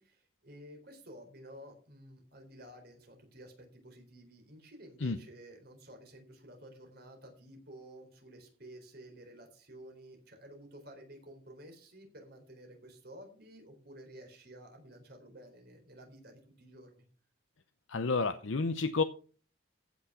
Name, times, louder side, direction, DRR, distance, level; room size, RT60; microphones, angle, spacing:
voice 1, 0.0-17.1, right 1 dB, 50° right, 3 dB, 4.1 m, -52 dB
voice 2, 17.9-19.0, left 4 dB, 80° left, 8 dB, 0.7 m, -30 dB
15.5 x 6.3 x 5.7 m, 0.40 s
head